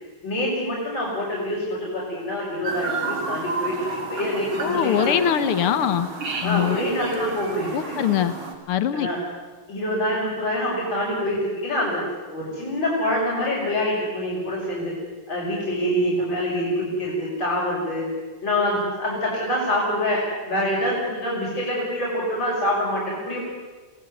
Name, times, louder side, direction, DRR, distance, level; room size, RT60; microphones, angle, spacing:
voice 1, 0.0-5.5 6.4-7.8 8.9-9.2 9.7-12.0 12.3-14.9 15.3-18.1 18.4-23.4, left 1 dB, 60° left, -5 dB, 6.8 m, -25 dB
Chirp tweet, 2.6-8.5, right 4 dB, 70° right, 4.1 m, -31 dB
voice 2, 4.6-6.1 6.4-6.8 7.7-8.4 8.7-9.1, left 10 dB, 90° left, 12 dB, 2.1 m, -22 dB
28.0 x 18.5 x 9.7 m, 1.3 s
omnidirectional pair, 2.3 m